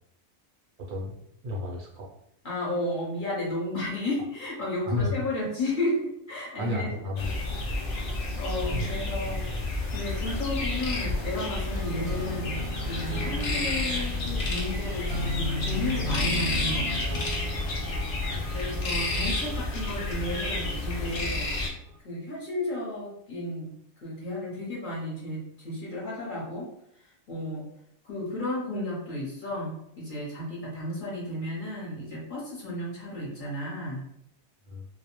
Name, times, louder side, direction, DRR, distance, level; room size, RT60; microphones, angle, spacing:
voice 1, 0.8-1.2 1.4-2.1 4.9-5.1 6.6-7.4 8.7-8.9 18.3-18.5 34.7-34.8, left 2 dB, 55° right, -2 dB, 0.6 m, -32 dB
voice 2, 2.4-6.9 7.9-9.5 9.9-17.3 18.5-21.6 22.0-23.7 24.0-26.7 27.0-27.7 28.0-34.0, left 1 dB, 45° left, -6 dB, 0.8 m, -33 dB
sound 1, 7.2-21.7, left 2 dB, 80° left, 0.4 m, -30 dB
sound 2, 11.7-21.9, left 1 dB, 90° right, 1.0 m, -37 dB
2.3 x 2.1 x 2.9 m, 0.74 s
omnidirectional pair, 1.4 m